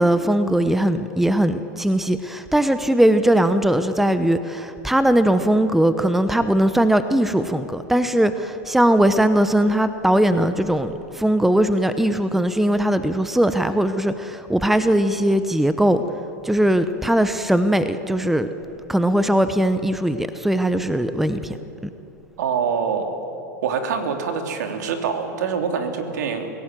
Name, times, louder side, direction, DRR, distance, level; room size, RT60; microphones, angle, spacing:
voice 1, 0.0-16.0 16.4-18.5 18.9-21.6, right 1 dB, ahead, 11 dB, 0.9 m, -19 dB
voice 2, 22.4-23.2 23.6-26.5, right 6 dB, 75° right, 5 dB, 2.8 m, -25 dB
26.5 x 17.0 x 7.6 m, 3.0 s
hypercardioid pair, 105°, 9 cm